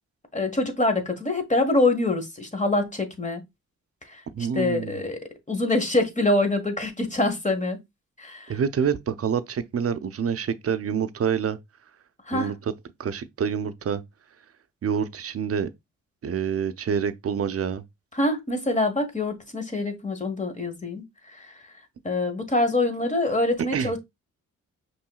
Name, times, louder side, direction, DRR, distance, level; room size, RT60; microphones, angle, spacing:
voice 1, 0.3-3.4 4.1-5.2 5.5-7.8 8.2-8.6 12.3-12.5 18.1-21.0 21.4-21.5 22.0-24.0, left 2 dB, 20° left, 1.4 m, -25 dB
voice 2, 4.3-5.0 8.5-11.6 12.3-12.6 13.0-14.0 14.8-15.7 16.2-17.8 23.7-23.9, right 7 dB, 45° right, 0.6 m, -27 dB
5.5 x 3.2 x 2.3 m
supercardioid pair, 55°, 34 cm